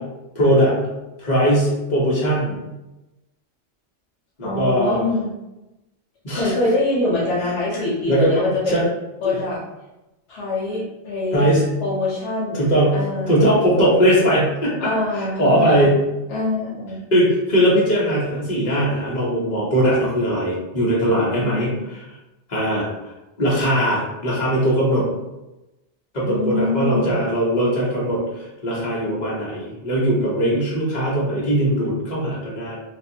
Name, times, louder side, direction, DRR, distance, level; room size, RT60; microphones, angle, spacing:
voice 1, 0.3-0.7 1.2-2.6 4.4-5.0 6.2-6.5 7.4-8.8 9.2-9.4 11.3-11.7 12.5-16.0 17.1-22.0 22.5-23.1 23.4-25.1 26.1-32.8, equal, 45° left, -6 dB, 1.0 m, -20 dB
voice 2, 4.4-5.3 6.4-8.9 9.2-9.6 10.3-11.5 11.8-12.7 12.9-13.6 14.8-15.9 16.3-17.0 21.0-21.7 26.2-27.1, left 2 dB, 85° left, -5 dB, 1.0 m, -24 dB
2.5 x 2.3 x 2.7 m, 0.99 s
omnidirectional pair, 1.1 m